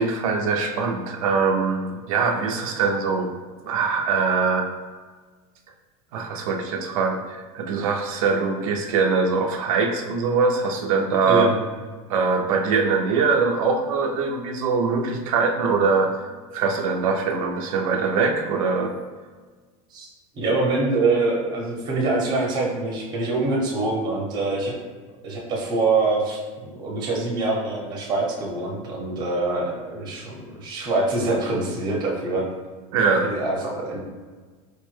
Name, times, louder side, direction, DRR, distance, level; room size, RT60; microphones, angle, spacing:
voice 1, 0.0-3.3 3.6-4.7 6.1-11.5 12.1-18.9 32.9-33.3, right 4 dB, 85° right, 3 dB, 0.5 m, -22 dB
voice 2, 20.3-24.7 25.2-32.5 33.0-34.0, right 2 dB, 25° right, -2 dB, 0.7 m, -24 dB
4.4 x 2.1 x 3.1 m, 1.4 s
supercardioid pair, 160°, 17 cm